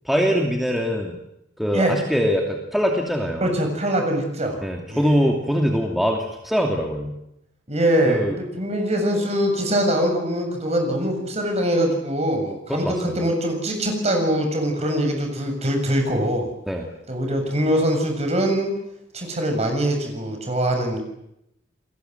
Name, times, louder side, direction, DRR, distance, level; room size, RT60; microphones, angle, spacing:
voice 1, 0.0-1.2 1.6-3.5 4.6-7.1 8.1-8.3 12.7-13.3 16.7-16.9, equal, ahead, 1 dB, 2.6 m, -23 dB
voice 2, 3.4-4.6 4.9-5.1 7.7-16.5 17.1-18.7 19.1-21.0, right 1 dB, 35° right, 4 dB, 7.3 m, -23 dB
29.5 x 21.0 x 8.0 m, 0.81 s
head